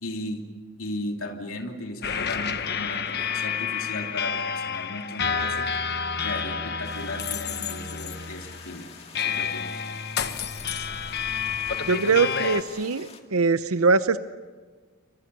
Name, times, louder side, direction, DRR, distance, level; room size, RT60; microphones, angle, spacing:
voice 1, 0.0-0.4 0.8-5.7 6.2-8.9 9.1-9.8, left 1 dB, 70° left, 2 dB, 2.9 m, -36 dB
sound 1, 2.0-12.6, left 6 dB, 45° left, 1.3 m, -29 dB
sound 2, 6.8-13.2, left 5 dB, 30° left, 2.2 m, -48 dB
voice 2, 11.9-14.2, right 4 dB, 75° right, 12 dB, 0.8 m, -22 dB
29.0 x 25.5 x 6.8 m, 1.4 s
head